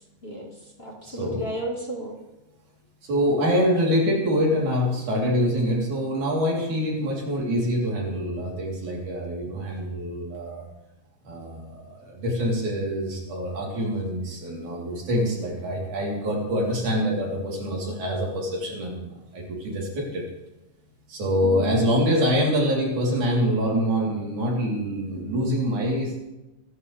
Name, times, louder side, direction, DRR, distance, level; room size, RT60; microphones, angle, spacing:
voice 1, 0.2-2.2 21.4-22.1, right 2 dB, 25° left, 0 dB, 1.4 m, -33 dB
voice 2, 1.1-1.5 3.0-10.7 11.3-20.3 21.1-26.2, equal, 70° right, -3 dB, 5.2 m, -25 dB
25.0 x 11.5 x 3.5 m, 0.98 s
omnidirectional pair, 3.7 m